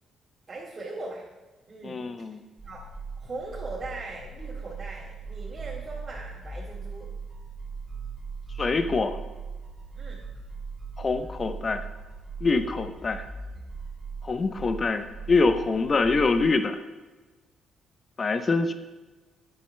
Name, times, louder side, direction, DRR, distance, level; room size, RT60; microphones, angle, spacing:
voice 1, 0.5-1.2 1.7-2.0 2.6-2.8 3.2-7.1 9.9-10.2, right 2 dB, 35° right, -8 dB, 2.3 m, -39 dB
voice 2, 1.8-2.4 8.6-9.2 11.0-11.9 12.4-13.2 14.2-16.8 18.2-18.7, left 3 dB, 35° left, 9 dB, 0.7 m, -25 dB
sound 1, 2.6-16.5, right 4 dB, 15° right, 2.7 m, -39 dB
11.5 x 8.7 x 3.3 m, 1.2 s
cardioid pair, 90°, 0 cm